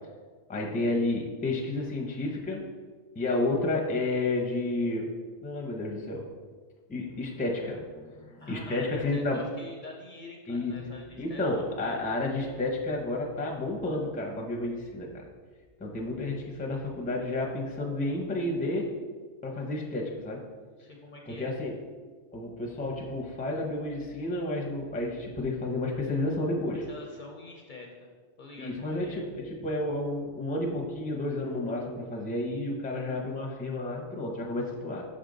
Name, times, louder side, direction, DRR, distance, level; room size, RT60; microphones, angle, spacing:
voice 1, 0.5-2.6 3.1-5.1 5.4-6.3 6.9-9.5 10.5-10.9 11.2-15.2 15.8-18.9 19.4-20.5 21.3-21.8 22.3-26.8 28.6-35.0, left 2 dB, 10° left, -1 dB, 0.6 m, -31 dB
voice 2, 8.4-12.0 20.8-21.6 26.9-28.1 28.4-29.3, left 3 dB, 50° left, 1 dB, 0.7 m, -45 dB
5.6 x 5.1 x 3.9 m, 1.5 s
omnidirectional pair, 1.2 m